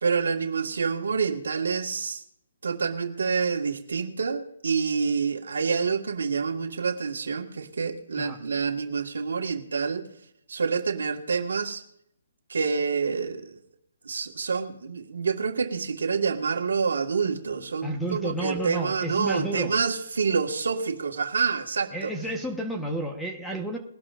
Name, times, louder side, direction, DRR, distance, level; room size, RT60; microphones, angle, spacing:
voice 1, 0.0-2.2 2.6-10.0 10.5-11.8 12.5-13.4 14.0-22.1, right 5 dB, 85° right, 4 dB, 1.6 m, -27 dB
voice 2, 17.8-19.7 21.9-23.8, right 1 dB, ahead, 2 dB, 1.2 m, -31 dB
21.5 x 11.5 x 2.5 m, 0.74 s
hypercardioid pair, 165°, 0 cm